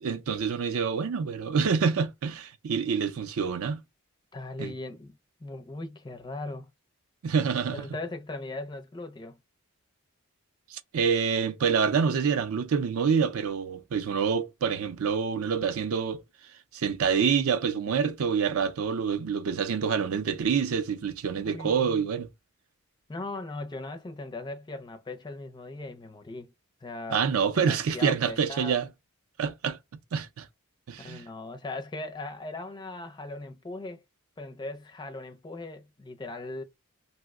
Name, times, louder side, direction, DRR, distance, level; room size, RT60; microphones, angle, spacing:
voice 1, 0.0-3.8 4.6-4.7 7.2-7.8 10.7-16.2 16.7-22.3 27.1-28.9 29.4-29.8 30.1-30.5 30.9-31.2, right 6 dB, 65° right, 0.4 m, -27 dB
voice 2, 4.3-6.7 7.7-9.4 21.4-22.1 23.1-26.5 26.8-27.3 27.5-28.8 31.0-34.0 34.4-36.6, left 2 dB, 20° left, 0.4 m, -39 dB
2.8 x 2.1 x 3.5 m
head